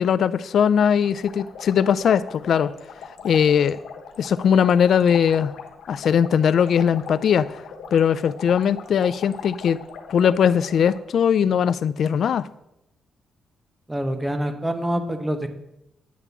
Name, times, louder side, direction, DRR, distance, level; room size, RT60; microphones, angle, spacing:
voice 1, 0.0-2.7 3.2-3.8 4.2-5.5 5.9-7.5 7.9-9.8 10.1-12.5, left 8 dB, 65° left, 16 dB, 0.4 m, -20 dB
sound 1, 1.0-11.0, left 6 dB, 85° left, 1.1 m, -41 dB
voice 2, 13.9-15.5, right 1 dB, 10° right, 8 dB, 0.8 m, -26 dB
9.4 x 3.7 x 6.9 m, 0.84 s
cardioid pair, 110°, 0 cm